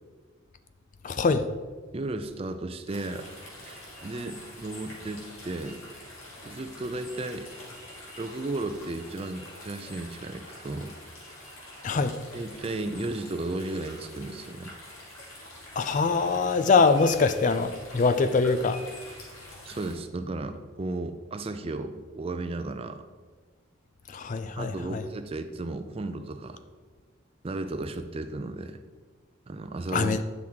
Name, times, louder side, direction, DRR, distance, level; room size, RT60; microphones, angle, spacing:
voice 1, 1.0-1.5 11.8-12.2 15.8-18.8 24.1-25.0 29.9-30.2, left 4 dB, 35° left, 11 dB, 0.3 m, -23 dB
voice 2, 1.9-3.3 3.6-5.8 6.4-7.5 8.2-10.9 12.3-14.7 19.2-19.3 19.7-23.0 24.6-26.6 27.4-28.8 29.5-30.2, right 2 dB, 30° right, 9 dB, 0.4 m, -34 dB
sound 1, 2.9-19.9, left 1 dB, 75° left, 2.3 m, -46 dB
9.5 x 6.0 x 3.6 m, 1.5 s
head